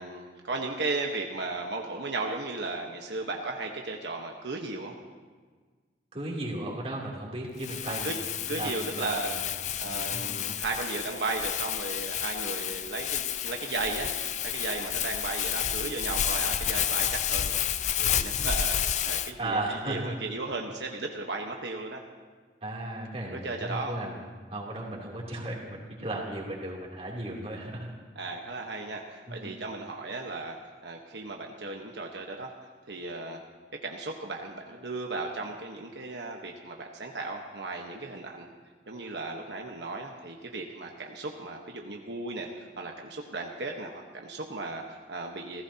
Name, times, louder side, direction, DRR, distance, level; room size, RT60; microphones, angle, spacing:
voice 1, 0.0-4.9 7.9-8.2 8.5-9.4 9.8-14.1 14.4-17.6 18.0-22.0 23.2-24.0 28.1-30.6 30.8-32.5 32.9-33.4 33.8-38.5 38.9-45.6, right 3 dB, 80° right, 1 dB, 1.2 m, -35 dB
voice 2, 6.1-9.4 9.8-10.6 19.4-20.1 22.6-24.2 24.5-27.9 29.3-29.6, right 1 dB, 35° right, -3 dB, 3.1 m, -35 dB
Crumpling crinkling, 7.6-19.3, left 10 dB, 40° left, 0.5 m, -30 dB
29.5 x 15.5 x 2.9 m, 1.5 s
head